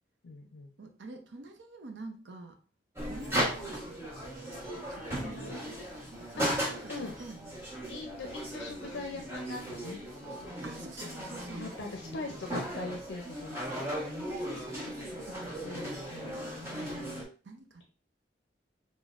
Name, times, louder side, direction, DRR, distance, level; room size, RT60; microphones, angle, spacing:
voice 1, 0.2-0.7 5.2-5.8 6.4-6.6 6.9-7.2 7.9-10.0 11.6-13.6 15.6-16.4, left 3 dB, 75° left, 3 dB, 0.5 m, -41 dB
voice 2, 0.8-2.6 3.1-4.1 4.9-5.6 6.3-7.6 10.6-11.7 14.4-15.6 16.1-17.1 17.4-17.9, right 2 dB, 75° right, 5 dB, 0.6 m, -47 dB
sound 1, 3.0-17.2, equal, 15° right, 1.1 m, -37 dB
5.9 x 2.1 x 2.4 m, 0.37 s
head